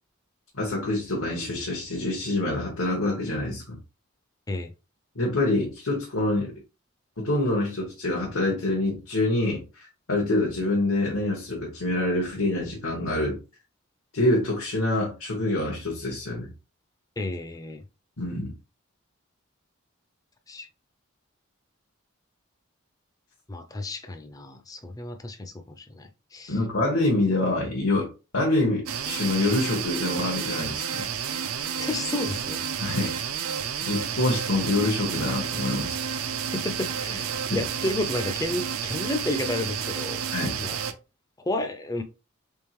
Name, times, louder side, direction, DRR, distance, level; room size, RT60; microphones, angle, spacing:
voice 1, 0.5-3.8 5.1-6.5 7.2-13.4 14.1-16.5 18.2-18.5 26.5-28.1 28.3-31.1 32.8-33.1 33.8-36.0 37.5-37.6 40.3-40.6, left 2 dB, 80° left, 1.3 m, -26 dB
voice 2, 17.2-17.8 20.5-20.7 23.5-26.6 31.8-32.6 36.5-40.2 40.6-40.8 41.4-42.0, left 2 dB, 15° left, 0.4 m, -31 dB
sound 1, 28.9-40.9, right 8 dB, 90° right, 0.5 m, -31 dB
3.7 x 3.6 x 3.0 m
head